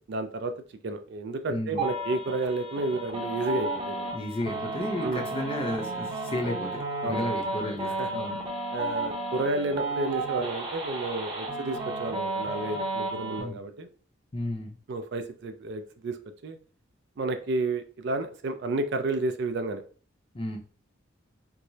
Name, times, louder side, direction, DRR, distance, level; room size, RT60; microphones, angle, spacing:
voice 1, 0.1-0.5 0.8-4.1 5.0-5.2 7.0-7.2 8.0-8.1 8.7-13.9 14.9-16.2 16.4-16.6 17.2-19.8, right 2 dB, 55° right, 8 dB, 0.4 m, -31 dB
voice 2, 1.5-1.9 4.1-8.4 13.4-13.6 14.3-14.8 20.3-20.6, left 1 dB, 25° left, 1 dB, 0.6 m, -33 dB
sound 1, 1.8-13.4, right 2 dB, 25° right, 1.0 m, -33 dB
4.6 x 2.0 x 2.7 m, 0.42 s
head